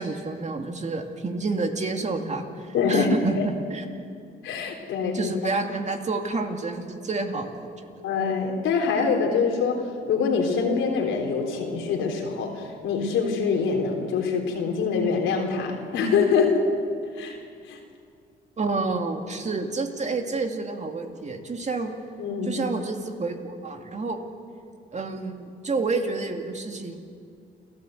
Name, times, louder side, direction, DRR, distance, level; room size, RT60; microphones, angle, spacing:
voice 1, 0.0-3.8 5.1-7.9 18.6-21.9 22.4-24.2 24.9-27.0, right 3 dB, 35° right, 4 dB, 2.4 m, -29 dB
voice 2, 2.7-3.4 4.4-5.3 8.0-9.8 10.1-16.6 17.2-17.4 17.7-17.8 22.2-22.6, left 5 dB, 85° left, 2 dB, 3.7 m, -24 dB
29.5 x 13.5 x 8.0 m, 2.3 s
cardioid pair, 90°, 20 cm